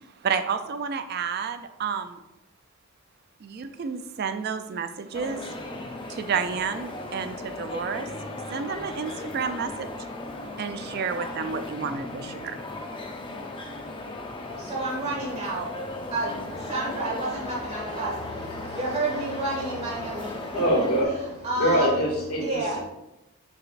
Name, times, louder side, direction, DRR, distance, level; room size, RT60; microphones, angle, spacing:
voice 1, 0.2-2.2 3.4-5.5 6.1-8.1 8.5-10.0 10.6-12.6, right 6 dB, 45° right, 10 dB, 0.3 m, -30 dB
sound 1, 5.1-21.0, left 2 dB, 20° left, 0.5 m, -37 dB
voice 2, 14.4-20.6 21.0-22.1 22.3-22.8, right 2 dB, 30° right, -4 dB, 1.9 m, -31 dB
voice 3, 20.5-21.1 21.6-22.8, equal, 90° left, -3 dB, 2.1 m, -24 dB
6.4 x 6.0 x 2.4 m, 0.93 s
head